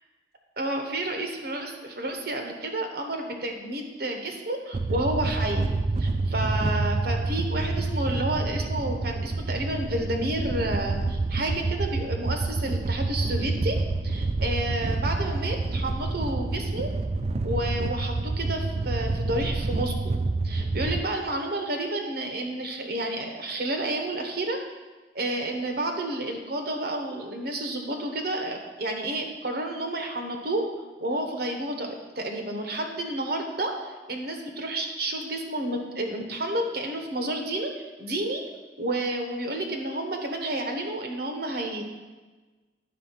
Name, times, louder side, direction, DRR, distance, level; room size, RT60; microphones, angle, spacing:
voice 1, 0.6-5.6 6.0-13.8 14.0-16.9 17.4-20.1 20.4-24.6 25.1-30.6 31.0-38.4 38.8-41.8, right 1 dB, 60° right, 3 dB, 1.1 m, -30 dB
sound 1, 4.7-21.0, right 3 dB, 35° right, 0.4 m, -28 dB
9.6 x 3.9 x 5.8 m, 1.3 s
head